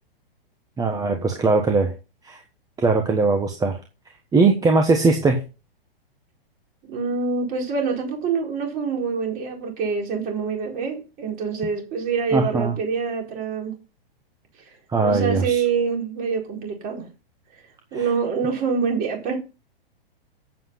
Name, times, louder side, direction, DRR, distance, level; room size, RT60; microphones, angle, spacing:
voice 1, 0.8-1.9 2.2-2.4 2.8-3.8 4.3-5.4 12.3-12.7 14.9-15.6, right 3 dB, 10° right, 1.2 m, -20 dB
voice 2, 6.8-13.7 15.0-17.1 17.9-19.4, right 5 dB, 30° right, 4.3 m, -25 dB
8.3 x 7.0 x 5.7 m
hypercardioid pair, 130°, 30 cm